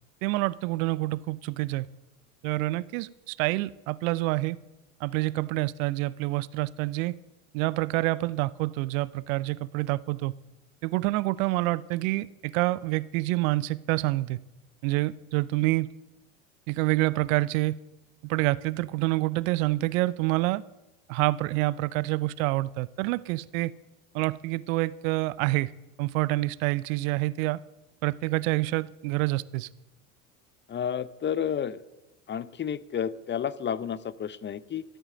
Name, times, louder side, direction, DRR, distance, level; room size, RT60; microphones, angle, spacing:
voice 1, 0.2-1.9 2.4-4.6 5.0-7.2 7.5-10.3 10.8-14.4 14.8-15.9 16.7-17.8 18.2-20.6 21.1-23.7 24.1-25.7 26.0-27.6 28.0-29.7, right 19 dB, 70° right, 0.6 m, -27 dB
voice 2, 30.7-31.8 32.3-34.8, left 8 dB, 25° left, 0.6 m, -31 dB
13.0 x 8.8 x 7.6 m
hypercardioid pair, 80°, 42 cm